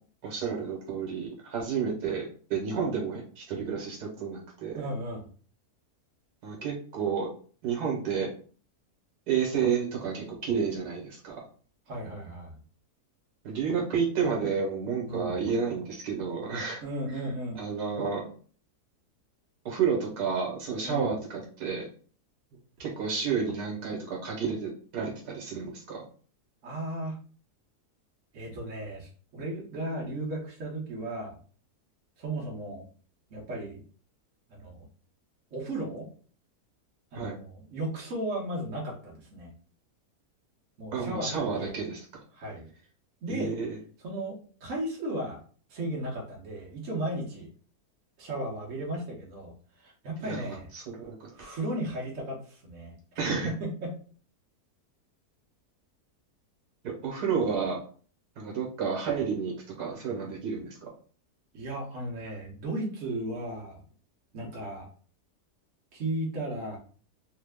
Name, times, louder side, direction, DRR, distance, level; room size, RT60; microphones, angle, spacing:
voice 1, 0.2-4.8 6.4-7.3 7.6-8.3 9.3-11.3 13.4-16.8 17.1-17.2 17.5-18.3 19.6-21.8 22.8-26.0 37.1-37.3 40.9-42.0 43.3-43.8 50.2-51.3 53.2-53.5 56.8-57.8 58.4-60.8, right 6 dB, 80° right, -1 dB, 1.5 m, -31 dB
voice 2, 4.7-5.3 11.9-12.6 15.0-15.3 16.8-17.6 20.8-21.1 26.6-27.2 28.3-31.4 32.2-32.8 33.3-33.8 34.5-34.8 35.5-36.1 37.1-39.5 40.8-41.8 42.3-42.7 43.2-43.6 44.0-45.4 45.7-47.5 48.2-49.5 49.8-50.7 51.3-53.0 53.4-53.9 60.4-60.5 61.5-63.8 64.3-64.9 65.9-66.8, right 1 dB, 55° right, -3 dB, 1.3 m, -35 dB
3.3 x 2.1 x 3.4 m, 0.43 s
omnidirectional pair, 1.6 m